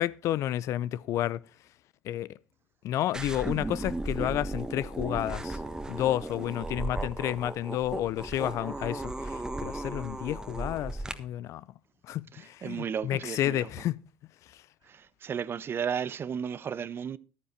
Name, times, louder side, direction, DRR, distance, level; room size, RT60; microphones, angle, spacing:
voice 1, 0.0-1.4 2.0-2.3 2.8-5.6 5.9-11.6 12.0-14.0, left 13 dB, 60° left, 0.4 m, -31 dB
sound 1, 3.1-11.1, right 2 dB, 10° right, 1.3 m, -36 dB
voice 2, 12.3-13.7 14.9-17.2, right 7 dB, 40° right, 0.6 m, -34 dB
10.5 x 9.8 x 4.4 m
hypercardioid pair, 65°, 6 cm